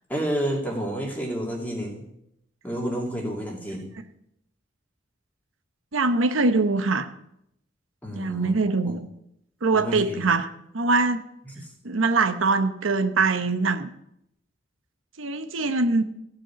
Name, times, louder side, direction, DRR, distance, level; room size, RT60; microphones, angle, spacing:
voice 1, 0.1-2.0 2.6-3.8 8.0-8.5 8.8-8.9 9.7-10.3 11.6-11.7, equal, 10° left, -1 dB, 2.6 m, -30 dB
voice 2, 5.9-7.1 8.1-9.1 9.6-10.5 10.7-11.2 11.8-13.9 15.2-16.0, right 3 dB, 90° right, 10 dB, 0.9 m, -23 dB
15.0 x 5.2 x 8.6 m, 0.78 s
head